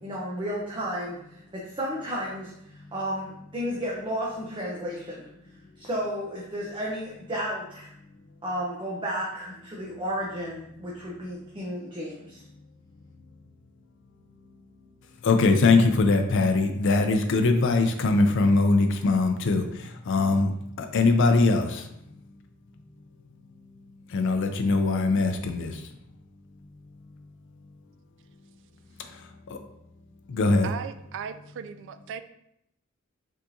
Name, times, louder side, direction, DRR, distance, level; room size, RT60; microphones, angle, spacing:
voice 1, 0.0-2.5 2.9-5.3 5.8-7.9 8.4-12.4, equal, 25° right, -4 dB, 0.7 m, -32 dB
voice 2, 15.2-19.6 20.1-20.5 20.8-21.8 24.1-25.7 29.5-29.6 30.3-30.7, left 3 dB, 65° left, 5 dB, 0.4 m, -21 dB
voice 3, 30.6-32.2, right 7 dB, 60° right, 11 dB, 0.3 m, -37 dB
5.4 x 3.6 x 2.6 m, 0.78 s
head